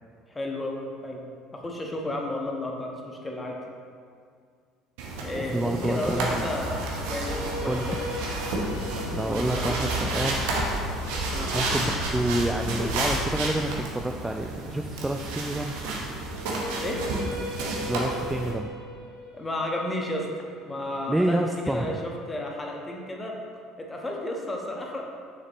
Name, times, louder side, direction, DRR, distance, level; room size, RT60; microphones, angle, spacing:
voice 1, 0.3-1.2 1.5-3.6 5.2-8.1 9.2-9.7 11.3-11.5 16.8-17.0 19.3-20.2 20.6-21.4 21.7-23.4 23.8-25.0, left 1 dB, 20° left, 0 dB, 1.2 m, -32 dB
sound 1, 5.0-18.5, right 2 dB, 65° right, 1.0 m, -31 dB
voice 2, 5.3-6.4 7.6-8.0 9.1-10.5 11.5-15.7 17.8-18.7 21.1-21.9, right 1 dB, 10° right, 3 dB, 0.4 m, -28 dB
sound 2, 6.0-13.3, left 1 dB, 80° left, 1.2 m, -35 dB
sound 3, 6.6-12.7 16.0-22.1, equal, 85° right, 1.6 m, -40 dB
6.5 x 6.5 x 3.1 m, 2.1 s
hypercardioid pair, 65°, 0 cm